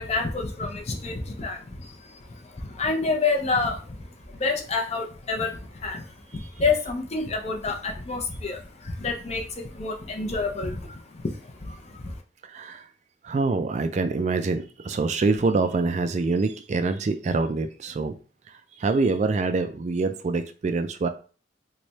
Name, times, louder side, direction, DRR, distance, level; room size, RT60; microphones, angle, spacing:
voice 1, 0.0-4.0 4.3-6.0 6.3-12.2, left 3 dB, 35° left, 3 dB, 0.6 m, -29 dB
voice 2, 12.5-12.8 13.2-18.1 18.8-21.1, right 3 dB, 40° right, 8 dB, 0.3 m, -25 dB
3.2 x 2.2 x 4.0 m, 0.38 s
head